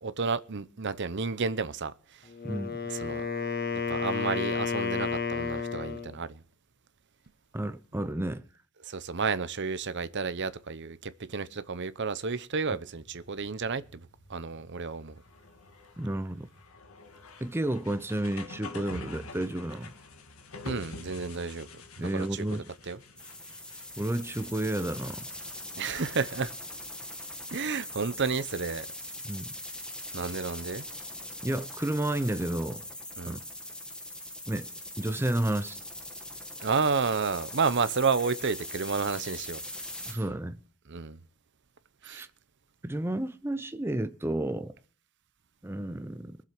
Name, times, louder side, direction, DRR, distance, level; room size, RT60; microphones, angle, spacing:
voice 1, 0.0-2.3 2.8-3.3 3.9-6.4 8.8-14.0 14.3-15.2 20.6-21.7 22.0-23.0 25.8-26.5 27.5-28.9 30.1-30.8 33.2-33.4 36.6-39.6 40.0-40.2 40.9-41.2 42.0-42.3, right 5 dB, 55° right, 0.8 m, -31 dB
Wind instrument woodwind instrument, 2.3-6.2, left 5 dB, 45° left, 1.4 m, -32 dB
voice 2, 2.4-2.8 7.5-8.5 16.0-16.5 17.4-19.9 22.0-22.7 24.0-25.3 29.2-29.5 31.4-32.8 33.3-33.4 34.5-34.7 35.0-35.8 40.1-40.6 42.0-42.3 42.8-44.7 45.6-46.4, right 1 dB, 10° right, 0.6 m, -31 dB
sound 1, 13.0-30.9, left 3 dB, 70° left, 1.9 m, -49 dB
sound 2, 23.2-40.1, left 1 dB, 5° left, 1.7 m, -41 dB
22.0 x 7.5 x 6.0 m
head